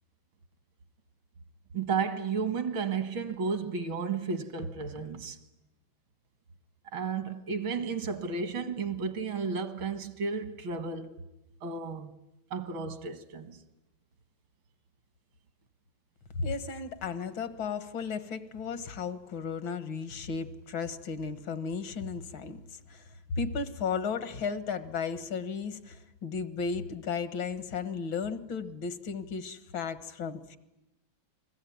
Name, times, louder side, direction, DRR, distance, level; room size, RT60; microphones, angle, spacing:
voice 1, 1.7-5.4 6.9-11.2 11.6-12.1 12.5-13.6, right 5 dB, 80° right, 2.4 m, -33 dB
voice 2, 16.4-30.6, left 5 dB, 75° left, 2.1 m, -35 dB
29.5 x 21.0 x 9.4 m
omnidirectional pair, 2.1 m